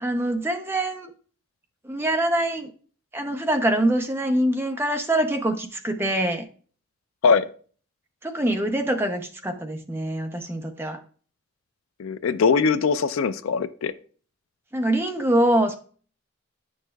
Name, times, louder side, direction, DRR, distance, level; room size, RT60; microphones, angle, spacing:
voice 1, 0.0-1.1 1.8-2.7 3.1-6.5 8.2-11.0 14.7-15.7, right 1 dB, 10° right, 5 dB, 0.6 m, -24 dB
voice 2, 12.0-13.9, left 5 dB, 75° left, 14 dB, 0.4 m, -21 dB
8.7 x 6.3 x 2.3 m, 0.42 s
head